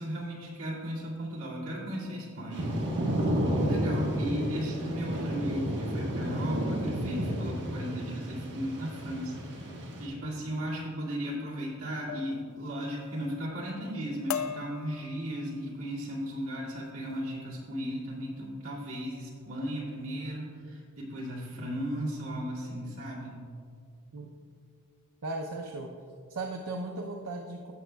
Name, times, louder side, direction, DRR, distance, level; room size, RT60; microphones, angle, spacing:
voice 1, 0.0-2.7 3.5-9.4 9.8-23.4, equal, 70° right, -5 dB, 2.1 m, -36 dB
Thunder / Rain, 2.5-10.1, equal, 55° right, 1.3 m, -31 dB
voice 2, 3.4-3.8 24.1-24.3 25.2-25.9 26.3-27.7, right 2 dB, 85° right, 2 dB, 0.6 m, -37 dB
sound 1, 11.1-11.4 12.1-12.4 12.8-13.3 13.7-13.9 14.3-15.6 16.2-16.5 16.8-17.2, left 8 dB, 75° left, 0.4 m, -39 dB
15.5 x 6.1 x 2.3 m, 2.3 s
head